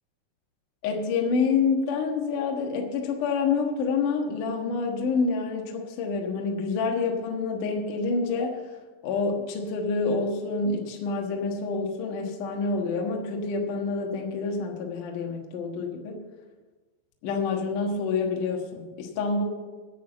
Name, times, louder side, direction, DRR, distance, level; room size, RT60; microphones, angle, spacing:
voice 1, 0.8-8.6 9.0-16.2 17.2-19.4, left 4 dB, 70° left, 1 dB, 2.0 m, -27 dB
11.5 x 7.4 x 7.8 m, 1.3 s
omnidirectional pair, 5.7 m